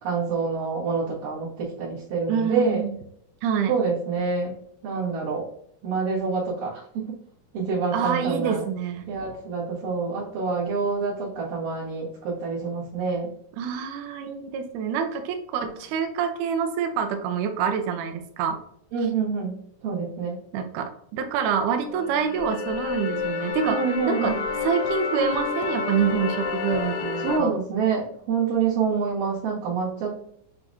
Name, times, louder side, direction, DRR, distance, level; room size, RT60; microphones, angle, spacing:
voice 1, 0.0-2.8 3.7-4.5 4.8-5.4 5.8-7.1 7.5-8.6 9.1-13.3 18.9-20.4 23.7-24.4 27.2-30.1, right 5 dB, 65° right, -10 dB, 3.1 m, -27 dB
voice 2, 2.3-3.0 3.4-3.7 7.9-9.1 13.6-18.6 20.5-24.4 24.6-27.5, right 7 dB, 85° right, 6 dB, 1.8 m, -26 dB
sound 1, 21.9-27.4, left 5 dB, 75° left, 2.2 m, -29 dB
6.7 x 2.9 x 2.6 m, 0.68 s
omnidirectional pair, 4.4 m